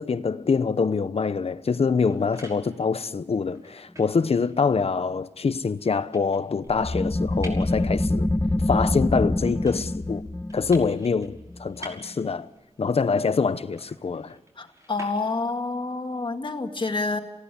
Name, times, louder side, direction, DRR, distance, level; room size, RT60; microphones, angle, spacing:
voice 1, 0.0-8.3 8.7-10.2 10.5-12.5 12.8-14.4, left 5 dB, 65° left, 1.0 m, -25 dB
sound 1, 1.7-15.7, right 1 dB, 30° right, 5.9 m, -50 dB
sound 2, 6.8-12.0, left 1 dB, 20° left, 1.0 m, -26 dB
voice 2, 14.6-17.2, left 3 dB, 45° left, 2.1 m, -28 dB
28.5 x 17.0 x 8.5 m
wide cardioid pair, 110°, 11 cm